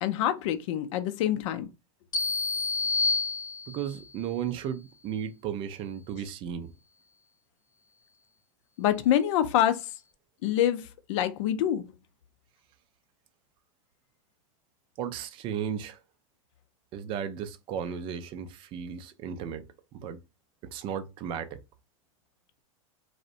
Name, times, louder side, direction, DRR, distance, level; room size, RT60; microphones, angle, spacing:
voice 1, 0.0-1.7 8.8-9.9 10.4-11.8, left 11 dB, 65° left, 0.4 m, -26 dB
sound 1, 2.1-4.0, left 3 dB, 25° left, 0.7 m, -28 dB
voice 2, 3.7-6.7 15.0-16.0 16.9-20.2 20.6-21.6, right 8 dB, 30° right, 0.3 m, -35 dB
2.6 x 2.0 x 2.5 m
supercardioid pair, 145°, 17 cm